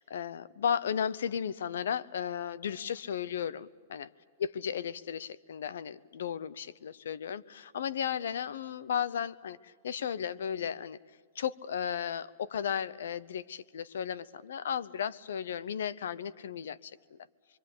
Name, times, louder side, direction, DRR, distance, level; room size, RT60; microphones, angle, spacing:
voice 1, 0.0-4.1 4.4-11.0 11.3-17.2, left 8 dB, 85° left, 18 dB, 0.8 m, -35 dB
26.5 x 24.0 x 8.5 m, 1.5 s
supercardioid pair, 165°, 0 cm